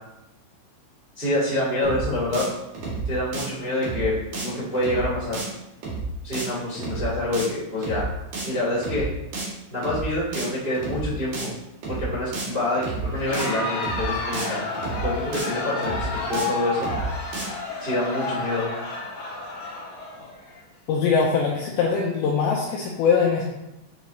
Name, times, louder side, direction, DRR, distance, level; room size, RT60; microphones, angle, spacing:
voice 1, 1.1-2.5 3.0-4.1 4.4-5.4 6.2-8.0 8.4-9.1 9.7-11.5 11.9-14.6 15.0-16.9 17.8-18.7, left 1 dB, 80° right, -9 dB, 0.5 m, -26 dB
sound 1, 1.8-2.1 2.3-2.5 2.7-3.1 3.3-3.5 3.8-4.1 4.3-4.5 4.7-5.1 5.3-5.5 5.8-6.1 6.3-6.5 6.7-7.1 7.3-7.5 7.8-8.1 8.3-8.5 8.7-9.1 9.3-9.5 9.8-10.1 10.3-10.5 10.7-11.1 11.3-11.5 11.8-12.1 12.3-12.5 12.7-13.1 13.3-13.5 13.8-14.1 14.3-14.5 14.7-15.1 15.3-15.5 15.8-16.1 16.3-16.5 16.7-17.1 17.3-17.5, right 4 dB, 55° right, 2.5 m, -31 dB
Crowd, 13.1-20.6, left 3 dB, 65° left, 3.0 m, -31 dB
voice 2, 20.9-23.4, left 5 dB, 85° left, -2 dB, 2.5 m, -22 dB
9.3 x 4.1 x 2.7 m, 0.92 s
omnidirectional pair, 5.7 m